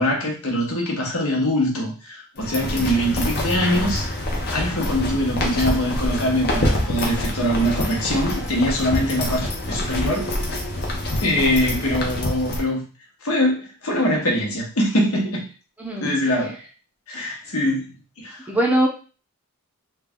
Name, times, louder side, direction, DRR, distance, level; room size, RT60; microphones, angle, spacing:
voice 1, 0.0-4.1 4.5-10.3 11.2-12.8 13.2-15.5 16.0-16.6 17.1-17.9 18.2-18.5, equal, 75° left, -1 dB, 1.1 m, -23 dB
sound 1, 2.4-12.6, left 1 dB, 45° left, 0.8 m, -26 dB
voice 2, 2.9-3.2 15.8-16.1 18.5-18.9, right 1 dB, 5° right, -1 dB, 0.6 m, -22 dB
3.3 x 2.3 x 3.6 m, 0.36 s
head